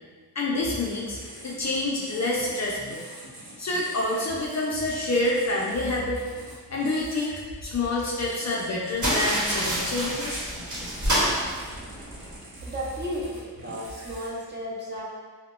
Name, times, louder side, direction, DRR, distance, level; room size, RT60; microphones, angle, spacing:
voice 1, 0.4-3.0 3.6-6.2 6.7-10.5, left 2 dB, 40° left, -3 dB, 0.4 m, -27 dB
sound 1, 0.6-14.3, right 1 dB, 65° right, 0.8 m, -43 dB
sound 2, 9.0-12.4, equal, 45° right, 1.0 m, -27 dB
voice 2, 12.6-15.0, equal, 25° right, -6 dB, 0.7 m, -34 dB
2.7 x 2.1 x 2.3 m, 1.5 s
cardioid pair, 45°, 41 cm